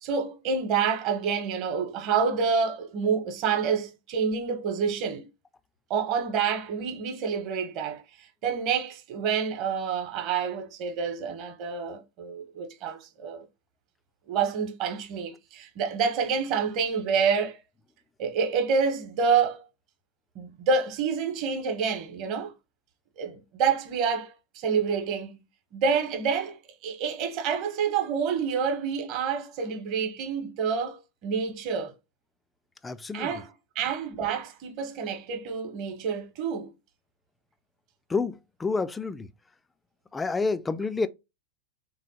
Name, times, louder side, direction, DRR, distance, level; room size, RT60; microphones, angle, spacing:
voice 1, 0.0-5.3 5.9-13.4 14.3-17.6 18.2-19.6 20.3-22.5 23.2-25.4 25.7-31.9 33.1-36.7, right 6 dB, 40° right, 1.0 m, -28 dB
voice 2, 32.8-33.3 38.1-39.3 40.1-41.1, left 4 dB, 10° left, 0.3 m, -29 dB
3.7 x 3.1 x 2.6 m
figure-of-eight pair, 90°, 0 cm